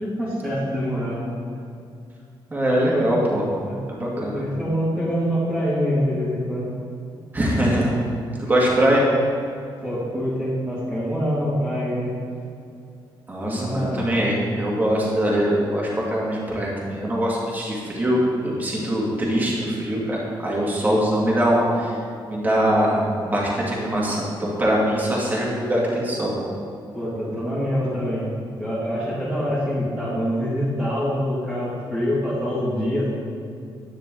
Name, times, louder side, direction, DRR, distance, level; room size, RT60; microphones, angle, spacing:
voice 1, 0.0-1.4 2.9-3.1 3.6-3.8 4.1-6.7 9.8-12.1 13.4-14.2 20.8-21.1 26.9-28.3 28.6-33.1, equal, ahead, -12 dB, 2.1 m, -25 dB
voice 2, 2.5-3.4 3.9-4.4 7.3-7.9 8.4-9.0 13.3-21.9 22.3-26.3, equal, 20° right, -5 dB, 2.0 m, -22 dB
10.0 x 9.3 x 3.8 m, 2.4 s
wide cardioid pair, 165°, 9 cm